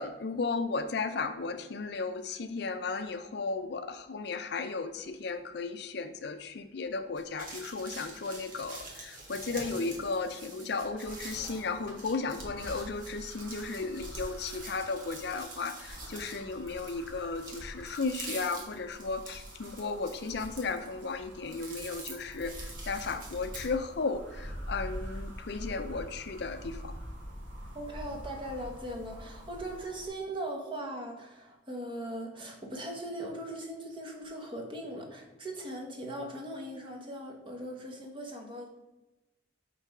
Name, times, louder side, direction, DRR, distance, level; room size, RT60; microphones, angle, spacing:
voice 1, 0.0-26.9, left 4 dB, 55° left, 9 dB, 0.5 m, -35 dB
sound 1, 7.1-23.7, right 2 dB, 45° right, 1.5 m, -46 dB
sound 2, 11.0-30.1, equal, 80° right, 1.6 m, -45 dB
voice 2, 27.7-38.7, right 1 dB, 25° right, 1 dB, 1.1 m, -39 dB
5.7 x 3.9 x 6.0 m, 1.0 s
head